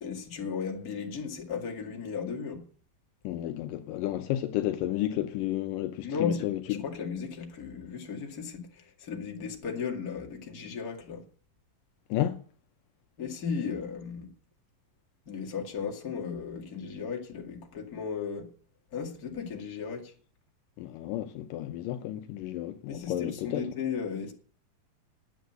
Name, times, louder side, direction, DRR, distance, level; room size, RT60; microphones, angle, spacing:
voice 1, 0.0-2.6 6.0-6.5 6.8-11.2 13.2-14.3 15.3-18.5 18.9-20.1 22.9-24.3, left 6 dB, 30° left, 2.0 m, -35 dB
voice 2, 3.2-6.9 12.1-12.4 20.8-23.7, left 13 dB, 80° left, 2.2 m, -32 dB
10.0 x 7.9 x 7.9 m
omnidirectional pair, 4.1 m